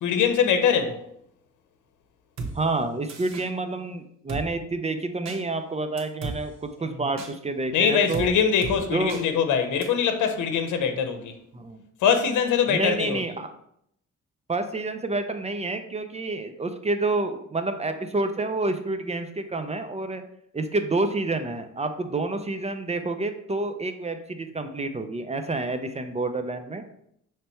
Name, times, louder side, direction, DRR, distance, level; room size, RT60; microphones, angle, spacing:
voice 1, 0.0-1.0 6.8-7.0 7.7-11.3 12.0-13.2, left 7 dB, 80° left, 0.8 m, -23 dB
Drum kit, 2.4-2.5 3.1-3.5 4.3-4.4 5.3-5.4 6.0-6.4 7.2-7.3 8.1-8.3 8.6-8.8 9.1-9.2 9.8-9.9, right 3 dB, 60° right, 1.3 m, -33 dB
voice 2, 2.5-8.3 8.9-9.2 11.5-11.8 12.7-13.5 14.5-20.2 20.5-26.8, right 2 dB, 20° right, 0.6 m, -28 dB
6.7 x 3.3 x 4.4 m
cardioid pair, 90°, 30 cm